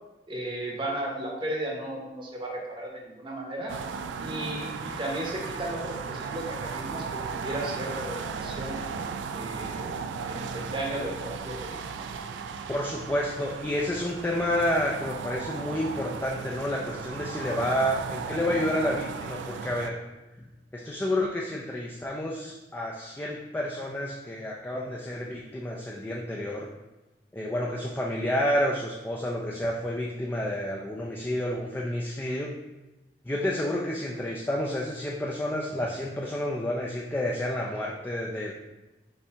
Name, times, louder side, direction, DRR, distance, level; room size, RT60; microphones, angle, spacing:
voice 1, 0.3-3.7 4.2-8.8 9.3-9.9 10.2-12.0, right 1 dB, 30° right, -1 dB, 0.8 m, -35 dB
sound 1, 3.7-19.9, right 5 dB, 90° right, 0.3 m, -36 dB
voice 2, 12.7-20.0 20.7-26.7 27.3-32.5 33.2-38.5, left 1 dB, 10° left, -2 dB, 0.3 m, -30 dB
5.5 x 2.7 x 3.3 m, 1.1 s
head